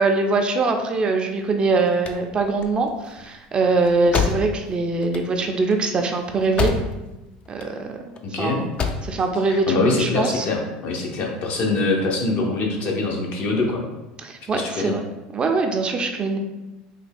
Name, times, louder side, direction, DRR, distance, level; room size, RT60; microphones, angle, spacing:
voice 1, 0.0-6.7 7.5-7.9 8.4-8.7 9.0-10.5 14.2-15.0 15.3-16.4, right 3 dB, 30° right, 4 dB, 0.4 m, -22 dB
sound 1, 1.6-7.2 7.5-8.2 8.6-9.2, left 5 dB, 35° left, 0.4 m, -28 dB
voice 2, 8.2-8.6 9.5-13.8 14.5-14.9, left 3 dB, 55° left, 1 dB, 0.7 m, -24 dB
3.4 x 2.2 x 3.4 m, 1.0 s
supercardioid pair, 105°, 3 cm